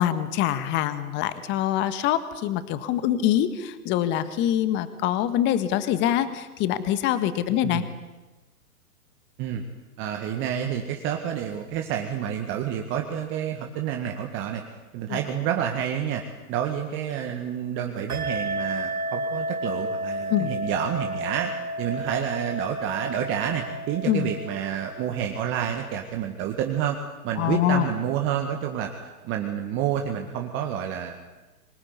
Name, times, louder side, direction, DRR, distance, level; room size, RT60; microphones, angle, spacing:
voice 1, 0.0-7.8 15.1-15.2 20.3-20.5 24.0-24.3 27.4-27.9, left 11 dB, 25° left, 12 dB, 1.6 m, -24 dB
voice 2, 10.0-14.6 14.9-16.2 16.5-21.5 21.8-27.0 27.2-28.9 29.2-31.1, right 9 dB, 25° right, 4 dB, 1.9 m, -29 dB
sound 1, 18.1-26.2, right 1 dB, 75° right, 4.0 m, -32 dB
25.5 x 19.0 x 9.8 m, 1.1 s
figure-of-eight pair, 125°, 45 cm